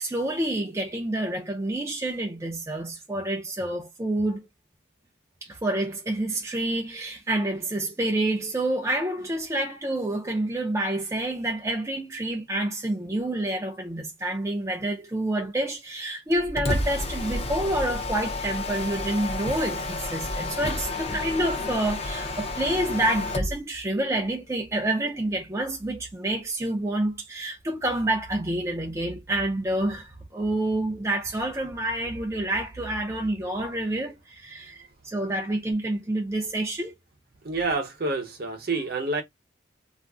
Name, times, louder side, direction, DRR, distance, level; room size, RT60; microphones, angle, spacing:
voice 1, 0.0-4.5 5.4-36.9, right 1 dB, 15° right, 0.4 m, -28 dB
Mechanisms, 16.3-23.6, left 2 dB, 30° left, 0.5 m, -30 dB
voice 2, 37.4-39.2, right 3 dB, 50° right, 0.8 m, -28 dB
2.5 x 2.0 x 3.4 m
head